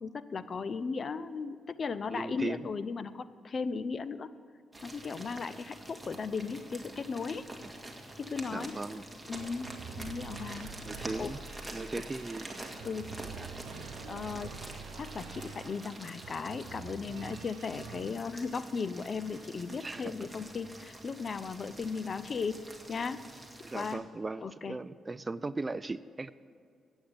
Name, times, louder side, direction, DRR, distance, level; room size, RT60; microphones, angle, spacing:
voice 1, 0.0-4.3 4.8-7.5 8.2-8.8 9.3-9.7 10.0-11.3 11.9-12.0 12.8-13.1 14.1-14.5 14.9-23.3 23.7-24.0 24.4-24.8, left 5 dB, 50° left, 15 dB, 0.5 m, -36 dB
voice 2, 2.1-2.6 7.6-7.7 8.5-9.1 10.8-11.4 11.7-12.5 13.4-13.5 19.8-20.3 23.6-26.3, right 3 dB, 25° right, 14 dB, 0.3 m, -38 dB
sound 1, 4.7-23.9, right 1 dB, 10° right, 1.8 m, -47 dB
sound 2, 9.4-18.5 18.8-19.7, right 6 dB, 90° right, 0.6 m, -47 dB
8.9 x 8.0 x 8.7 m, 2.2 s
cardioid pair, 65°, 0 cm